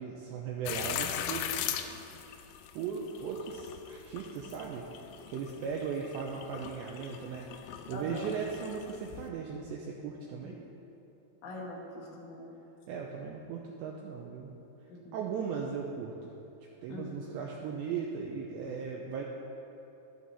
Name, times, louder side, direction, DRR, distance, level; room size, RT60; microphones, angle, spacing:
voice 1, 0.0-1.5 2.7-4.9 5.3-7.5 7.9-10.6 12.9-14.5 15.1-16.3 16.8-19.2, right 6 dB, 90° right, -1 dB, 2.5 m, -37 dB
sound 1, 0.7-9.3, left 10 dB, 85° left, 3.3 m, -40 dB
voice 2, 7.9-8.3 10.4-10.7 11.4-12.5 14.9-15.2 16.9-17.3, left 1 dB, 70° left, -3 dB, 3.8 m, -43 dB
12.0 x 12.0 x 4.2 m, 2.9 s
omnidirectional pair, 5.9 m